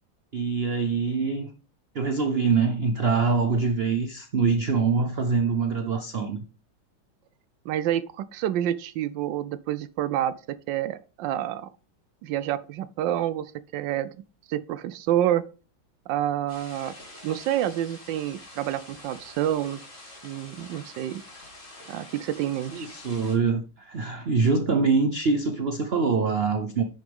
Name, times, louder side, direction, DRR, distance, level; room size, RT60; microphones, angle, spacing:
voice 1, 0.3-1.5 1.9-6.4 22.7-26.8, right 4 dB, 55° right, 0.7 m, -24 dB
voice 2, 7.7-11.7 12.2-14.1 14.5-15.5 16.1-16.9 17.2-19.8 20.2-21.2 21.9-22.9, right 12 dB, 80° right, 1.3 m, -28 dB
sound 1, 16.5-23.4, left 1 dB, 25° left, 3.4 m, -46 dB
10.0 x 6.6 x 3.5 m
omnidirectional pair, 2.0 m